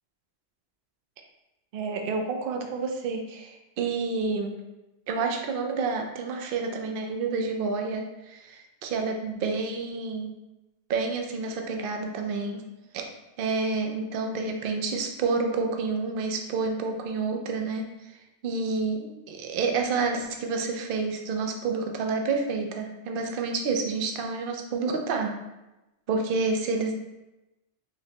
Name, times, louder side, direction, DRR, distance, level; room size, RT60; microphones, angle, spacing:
voice 1, 1.7-4.5 5.1-10.3 10.9-12.6 12.9-13.0 13.4-18.1 18.4-25.3 26.1-26.9, right 4 dB, 60° right, 4 dB, 0.7 m, -29 dB
4.8 x 3.2 x 2.8 m, 0.98 s
omnidirectional pair, 1.2 m